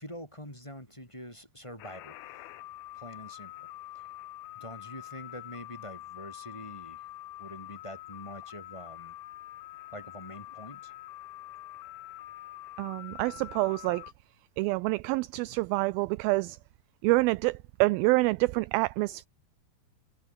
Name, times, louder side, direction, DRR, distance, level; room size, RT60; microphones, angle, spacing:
voice 1, 0.0-2.2 2.9-3.5 3.9-4.0 4.5-7.0 7.4-9.2 9.9-10.9, equal, 5° left, 6.4 m, -45 dB
sound 1, 1.8-14.1, left 15 dB, 75° left, 2.7 m, -45 dB
voice 2, 12.8-14.1 14.6-16.6 17.0-19.3, right 22 dB, 80° right, 2.2 m, -27 dB
omnidirectional pair, 4.5 m